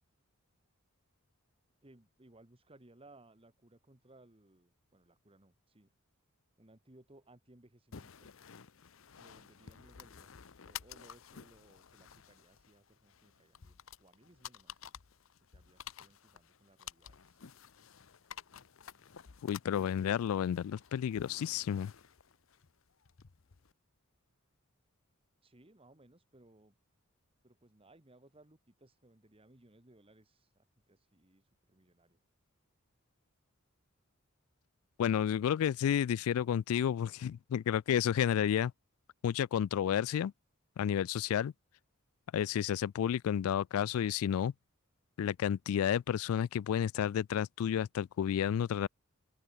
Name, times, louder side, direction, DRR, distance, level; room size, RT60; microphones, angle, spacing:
voice 1, 1.8-5.9 6.6-8.3 9.2-10.3 10.6-14.8 15.5-17.4 25.4-26.8 27.4-32.2, right 2 dB, 25° right, 1.6 m, -62 dB
sound 1, 7.9-23.7, left 8 dB, 65° left, 0.7 m, -52 dB
voice 2, 19.4-21.9 35.0-38.7 39.2-40.3 40.8-41.5 42.3-44.5 45.2-48.9, left 9 dB, 80° left, 0.3 m, -31 dB
open air
head